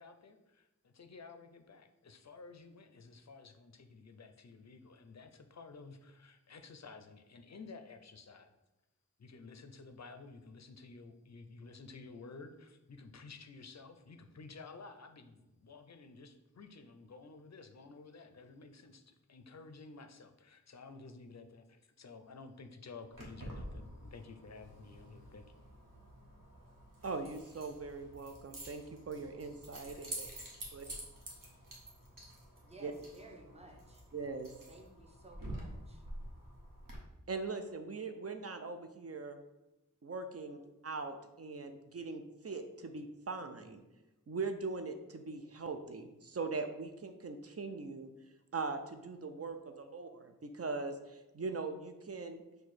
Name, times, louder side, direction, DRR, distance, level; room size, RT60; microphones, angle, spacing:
voice 1, 0.0-8.5 9.2-25.5, left 4 dB, 55° left, 8 dB, 0.5 m, -53 dB
Keys jangling, 23.1-37.0, right 1 dB, 70° right, 1.0 m, -49 dB
voice 2, 27.0-30.3 30.7-30.9 32.8-32.9 34.1-34.5 37.3-39.4 40.0-43.8 44.3-48.1 48.5-52.4, right 4 dB, 45° right, 7 dB, 0.4 m, -41 dB
voice 3, 32.7-34.0 34.7-36.0, right 2 dB, 20° right, 1 dB, 0.8 m, -56 dB
4.6 x 2.2 x 4.1 m, 1.0 s
wide cardioid pair, 40°, 34 cm